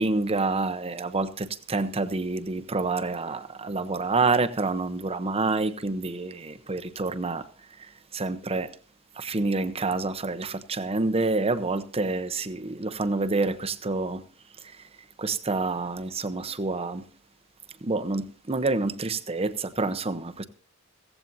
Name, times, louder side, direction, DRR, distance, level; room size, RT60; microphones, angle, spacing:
voice 1, 0.0-7.5 7.8-8.7 9.2-14.2 14.6-14.8 15.2-17.0 17.8-20.4, right 3 dB, 30° right, 0.8 m, -28 dB
16.0 x 15.0 x 2.7 m
head